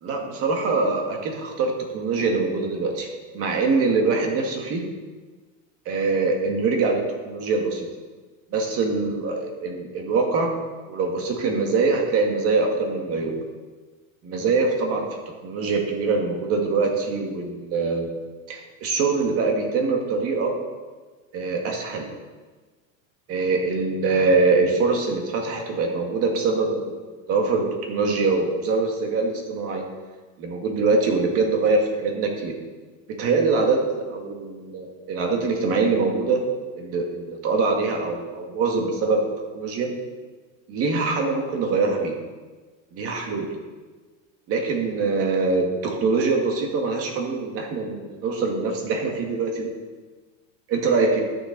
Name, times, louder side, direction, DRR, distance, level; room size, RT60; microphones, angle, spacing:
voice 1, 0.0-3.1 3.3-4.8 5.9-7.9 8.5-10.5 10.9-13.4 14.2-15.0 15.4-18.1 18.5-20.5 21.3-22.1 23.3-29.8 30.4-32.5 33.2-36.4 36.8-39.2 39.5-39.9 40.7-42.1 42.9-43.5 44.5-49.7 50.7-51.2, right 4 dB, 35° right, 2 dB, 2.0 m, -23 dB
11.5 x 7.2 x 5.3 m, 1.3 s
supercardioid pair, 150°, 40 cm